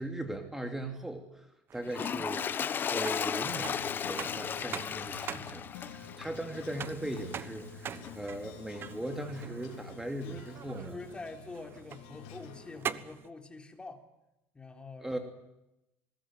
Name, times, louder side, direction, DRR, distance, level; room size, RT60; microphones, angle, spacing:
voice 1, 0.0-1.5 1.7-2.5 2.9-11.0 15.0-15.2, right 1 dB, 5° right, 5 dB, 2.8 m, -39 dB
sound 1, 1.7-13.3, right 8 dB, 40° right, 1.2 m, -45 dB
Toilet flush, 1.9-7.3 8.0-8.1, left 7 dB, 35° left, 1.0 m, -35 dB
sound 2, 3.2-12.9, left 6 dB, 85° left, 3.6 m, -49 dB
voice 2, 10.8-14.0 14.5-15.2, left 3 dB, 15° left, 5 dB, 3.8 m, -46 dB
24.5 x 20.5 x 9.2 m, 0.89 s
supercardioid pair, 115°, 6 cm